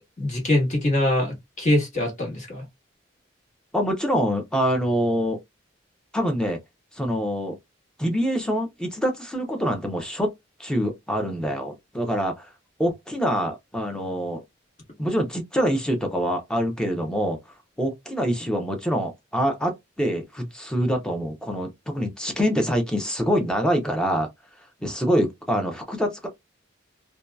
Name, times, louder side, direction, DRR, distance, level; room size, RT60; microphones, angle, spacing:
voice 1, 0.2-2.6, left 1 dB, 40° left, 1.3 m, -23 dB
voice 2, 3.7-5.4 6.1-6.6 6.9-7.6 8.0-10.3 10.6-12.5 12.8-14.4 15.0-17.4 17.8-24.3 24.8-26.3, equal, 5° left, 0.6 m, -25 dB
2.7 x 2.3 x 2.2 m
head